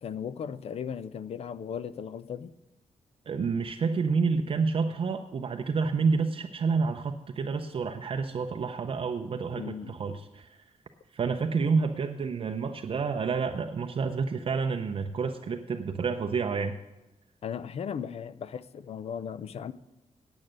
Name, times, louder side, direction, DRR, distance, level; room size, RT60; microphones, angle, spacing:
voice 1, 0.0-2.5 9.5-10.0 17.4-19.7, left 7 dB, 55° left, 15 dB, 0.5 m, -37 dB
voice 2, 3.3-10.6 11.1-16.8, right 5 dB, 45° right, 5 dB, 0.5 m, -29 dB
8.8 x 8.8 x 6.3 m, 1.0 s
wide cardioid pair, 170°, 12 cm